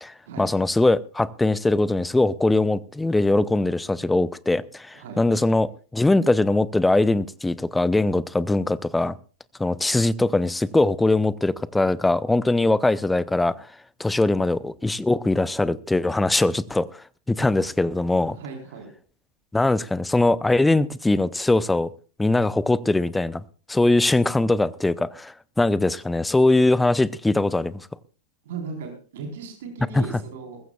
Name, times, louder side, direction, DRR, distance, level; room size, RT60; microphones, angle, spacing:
voice 1, 0.0-9.2 9.6-13.7 14.0-16.9 17.3-18.4 19.5-21.9 22.2-23.4 23.7-27.9 29.9-30.1, left 2 dB, 5° left, 20 dB, 0.6 m, -21 dB
voice 2, 18.3-18.9 28.4-30.6, right 5 dB, 55° right, 3 dB, 4.1 m, -37 dB
21.5 x 15.0 x 2.4 m, 0.38 s
figure-of-eight pair, 90°, 0 cm